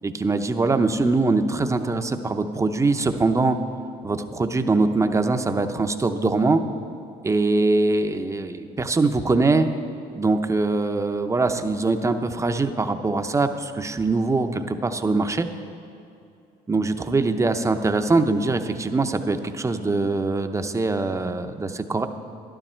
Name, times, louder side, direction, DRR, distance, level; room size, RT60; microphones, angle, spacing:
voice 1, 0.0-3.6 4.0-6.6 7.2-9.7 10.1-15.5 16.7-22.1, right 3 dB, 15° right, 7 dB, 0.6 m, -22 dB
12.5 x 12.0 x 4.4 m, 2.6 s
cardioid pair, 110°, 17 cm